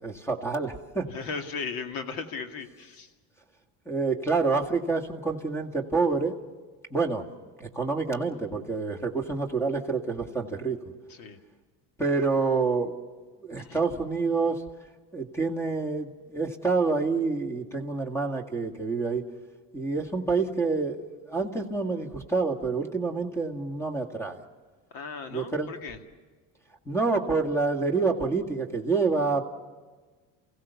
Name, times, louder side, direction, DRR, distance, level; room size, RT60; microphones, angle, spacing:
voice 1, 0.0-1.1 3.9-6.4 6.9-7.3 7.6-10.8 12.0-12.9 13.4-14.6 15.1-19.2 19.7-24.4 25.3-25.7 26.9-29.5, right 4 dB, 5° left, 5 dB, 2.0 m, -27 dB
voice 2, 1.1-3.1 11.1-11.4 13.6-13.8 24.9-26.0, left 5 dB, 65° left, 6 dB, 2.3 m, -37 dB
28.5 x 16.5 x 7.0 m, 1.4 s
cardioid pair, 125°, 37 cm